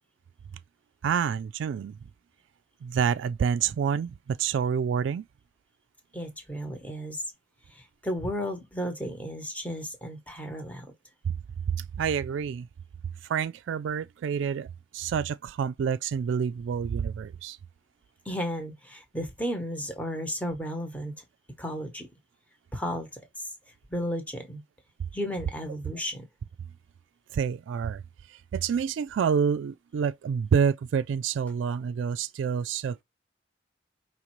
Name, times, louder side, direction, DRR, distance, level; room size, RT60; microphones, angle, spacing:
voice 1, 1.0-2.0 2.8-5.3 11.7-12.7 13.2-14.7 14.9-17.6 27.3-28.0 28.3-33.0, right 7 dB, 85° right, 0.3 m, -28 dB
voice 2, 6.1-7.2 7.7-10.9 18.2-21.2 21.6-22.1 22.7-23.1 23.9-24.6 25.1-26.3, equal, 10° left, 1.0 m, -33 dB
5.2 x 3.1 x 3.0 m
head